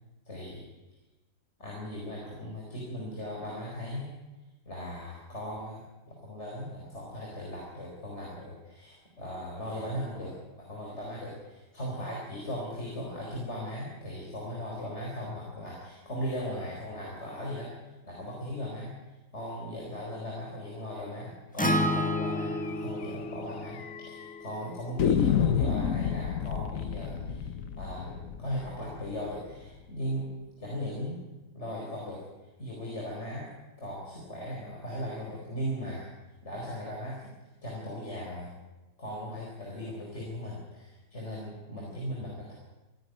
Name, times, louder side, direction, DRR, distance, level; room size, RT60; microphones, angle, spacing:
voice 1, 0.3-0.6 1.6-4.1 4.6-10.3 10.7-17.7 18.0-18.9 19.3-27.5 27.8-30.3 30.6-31.2 31.5-32.2 32.6-33.5 33.8-36.1 36.4-37.2 37.6-38.5 39.0-42.5, equal, 40° left, -3 dB, 4.5 m, -38 dB
Acoustic guitar, 21.6-25.8, left 1 dB, 5° left, 1.4 m, -32 dB
sound 1, 22.2-22.3 22.6-22.7 23.0-23.1 23.8-24.3 25.0-29.8, left 8 dB, 60° left, 1.1 m, -30 dB
26.5 x 10.5 x 9.2 m, 1.1 s
omnidirectional pair, 1.8 m